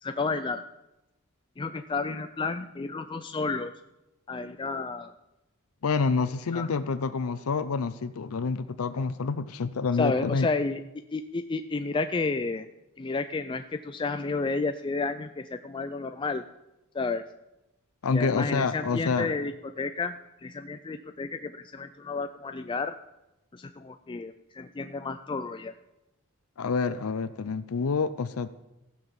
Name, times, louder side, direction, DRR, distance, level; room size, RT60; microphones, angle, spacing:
voice 1, 0.0-0.6 1.6-3.7 4.3-5.1 6.5-6.7 10.0-10.8 11.1-12.7 13.0-16.4 16.9-17.2 18.1-19.5 19.8-23.0 23.5-25.7, left 3 dB, 20° left, 8 dB, 0.3 m, -31 dB
voice 2, 5.8-10.5 18.0-19.3 26.6-28.5, left 4 dB, 75° left, 11 dB, 0.5 m, -28 dB
15.5 x 6.0 x 7.1 m, 0.97 s
head